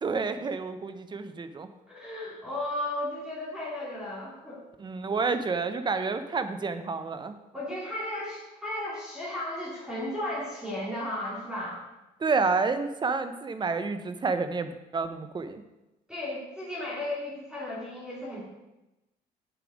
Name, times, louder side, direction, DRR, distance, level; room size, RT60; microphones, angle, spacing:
voice 1, 0.0-1.7 4.8-7.4 12.2-15.6, right 4 dB, 25° right, 10 dB, 0.8 m, -29 dB
voice 2, 1.9-4.6 7.5-11.8 16.1-18.4, left 1 dB, 5° right, -7 dB, 3.0 m, -34 dB
8.2 x 7.1 x 5.1 m, 0.99 s
cardioid pair, 110°, 17 cm